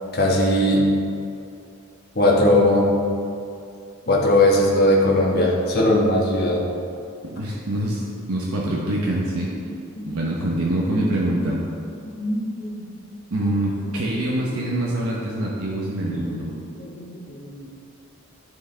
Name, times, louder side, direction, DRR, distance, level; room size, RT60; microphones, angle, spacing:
voice 1, 0.1-0.9 2.1-2.9 4.1-6.6 9.5-9.6 10.0-10.1 11.0-11.5 12.0-12.8 13.4-13.6 13.9-14.0 14.5-14.6 16.1-16.2 16.5-17.7, left 1 dB, 45° left, -3 dB, 1.3 m, -20 dB
voice 2, 7.2-9.5 10.0-11.6 13.3-16.5, right 1 dB, 75° right, -4 dB, 0.9 m, -25 dB
11.5 x 4.8 x 3.4 m, 2.5 s
head